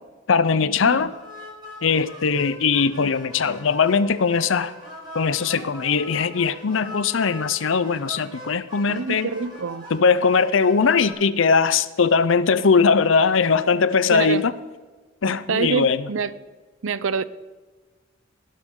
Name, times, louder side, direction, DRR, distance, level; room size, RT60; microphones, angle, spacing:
voice 1, 0.3-1.1 1.8-4.7 5.1-9.3 9.9-14.5 15.2-16.0, left 5 dB, 75° left, 0.6 m, -20 dB
sound 1, 1.0-11.1, left 1 dB, 25° right, 4.4 m, -40 dB
voice 2, 8.9-9.8 13.7-13.8 14.1-14.5 15.5-16.3 16.8-17.2, right 5 dB, 75° right, 0.6 m, -26 dB
18.0 x 10.5 x 3.8 m
head